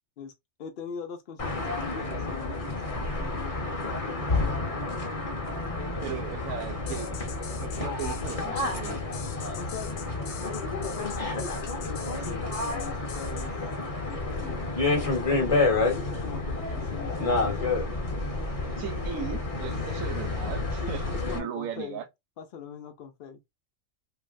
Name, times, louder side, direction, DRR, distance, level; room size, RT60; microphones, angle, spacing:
voice 1, 0.6-4.6 9.5-10.0 10.8-13.5 14.1-14.7 14.9-15.4 15.8-17.8 20.8-22.0 22.4-23.4, left 7 dB, 65° left, 0.6 m, -42 dB
sound 1, 1.4-21.4, left 3 dB, 30° left, 0.8 m, -30 dB
voice 2, 6.0-9.1 18.8-21.0 21.3-22.1, right 9 dB, 85° right, 1.0 m, -37 dB
sound 2, 6.9-13.5, left 9 dB, 80° left, 0.9 m, -43 dB
3.1 x 2.5 x 2.4 m
omnidirectional pair, 1.4 m